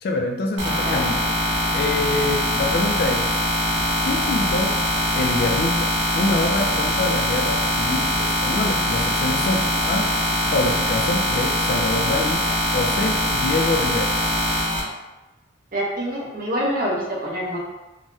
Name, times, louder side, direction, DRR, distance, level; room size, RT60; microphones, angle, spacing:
voice 1, 0.0-3.4 4.0-4.8 5.1-10.1 10.5-12.5 12.7-14.1, left 2 dB, 50° left, 2 dB, 0.3 m, -25 dB
sound 1, 0.6-14.8, equal, 65° right, 1.0 m, -22 dB
voice 2, 15.7-17.6, equal, 45° right, -4 dB, 0.7 m, -26 dB
3.4 x 2.1 x 2.6 m, 1.1 s
head